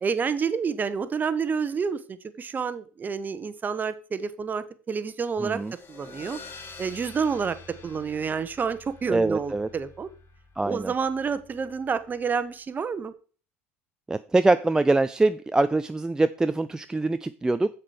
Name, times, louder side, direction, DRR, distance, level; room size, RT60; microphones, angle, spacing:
voice 1, 0.0-5.6 5.9-6.4 6.8-7.6 7.8-10.1 10.6-13.1, right 6 dB, 25° right, 13 dB, 1.0 m, -29 dB
sound 1, 5.4-12.4, left 3 dB, 35° left, 1.7 m, -48 dB
voice 2, 5.4-5.7 9.1-9.7 10.6-10.9 14.1-17.7, right 2 dB, 10° right, 11 dB, 0.4 m, -24 dB
7.5 x 7.5 x 4.9 m, 0.39 s
figure-of-eight pair, 65°, 7 cm